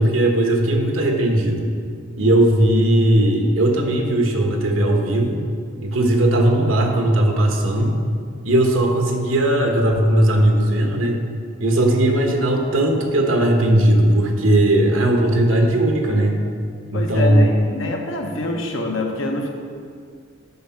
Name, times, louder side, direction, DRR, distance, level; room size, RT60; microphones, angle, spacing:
voice 1, 0.0-1.7 2.2-5.4 5.8-8.0 8.4-11.2 11.6-16.3 16.9-17.5, right 1 dB, 90° right, 2 dB, 1.2 m, -18 dB
voice 2, 16.9-19.5, left 1 dB, 75° left, 2 dB, 1.2 m, -25 dB
8.2 x 5.9 x 5.8 m, 2.2 s
head